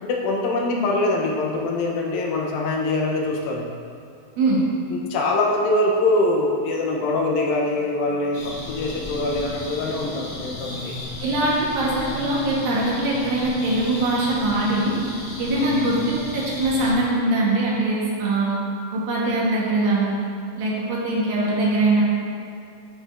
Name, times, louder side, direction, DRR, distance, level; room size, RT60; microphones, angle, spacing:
voice 1, 0.0-3.7 4.9-11.0 15.6-15.8, left 2 dB, 80° left, -1 dB, 2.4 m, -23 dB
sound 1, 8.3-16.9, left 2 dB, 60° left, 1.8 m, -34 dB
voice 2, 11.2-14.9 15.4-18.6 18.9-20.2 20.6-22.0, right 2 dB, 75° right, -5 dB, 2.7 m, -22 dB
10.5 x 4.8 x 2.4 m, 2.4 s
omnidirectional pair, 4.3 m